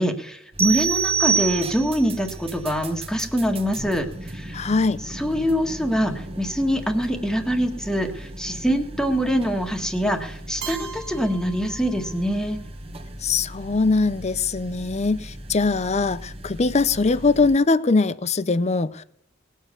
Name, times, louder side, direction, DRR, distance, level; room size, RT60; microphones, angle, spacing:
voice 1, 0.0-4.6 5.1-12.6, equal, 5° left, 5 dB, 1.7 m, -24 dB
sound 1, 0.5-17.6, right 1 dB, 30° right, 1.3 m, -38 dB
sound 2, 0.6-2.1, right 7 dB, 10° right, 0.7 m, -23 dB
voice 2, 4.5-5.0 13.2-19.0, left 3 dB, 35° left, 17 dB, 0.6 m, -21 dB
Keyboard (musical), 10.6-12.5, right 6 dB, 65° right, 1.5 m, -39 dB
19.5 x 7.4 x 6.9 m, 0.74 s
head